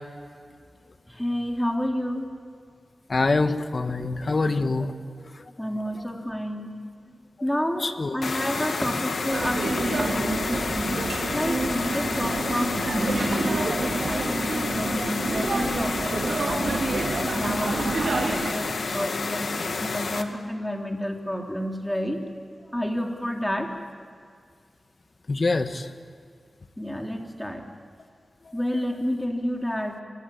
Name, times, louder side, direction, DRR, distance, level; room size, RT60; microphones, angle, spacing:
voice 1, 1.1-2.3 5.6-6.7 7.4-11.0 11.3-13.6 14.1-16.9 17.3-22.2 22.7-23.7 26.8-27.6 28.5-30.0, equal, 10° left, 2 dB, 3.4 m, -30 dB
voice 2, 3.1-4.9 5.2-5.3 7.8-8.2 17.7-18.0 25.3-25.9, left 3 dB, 45° left, 9 dB, 1.5 m, -25 dB
sound 1, 8.2-20.2, left 4 dB, 70° left, 1.6 m, -30 dB
ambience pub outdoor, 9.3-18.5, right 3 dB, 70° right, 2.8 m, -28 dB
25.5 x 20.5 x 8.7 m, 2.1 s
wide cardioid pair, 80°, 0 cm